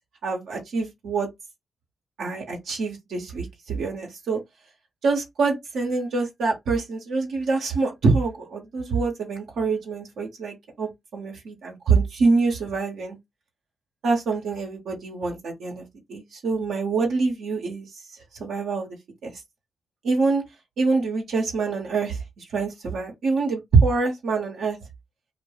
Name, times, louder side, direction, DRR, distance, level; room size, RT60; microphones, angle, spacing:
voice 1, 0.2-1.3 2.2-4.4 5.0-13.2 14.0-18.0 18.4-19.0 19.2-19.3 20.0-20.4 20.8-24.8, right 4 dB, 75° right, 0.7 m, -25 dB
2.1 x 2.0 x 3.2 m
supercardioid pair, 45°, 0 cm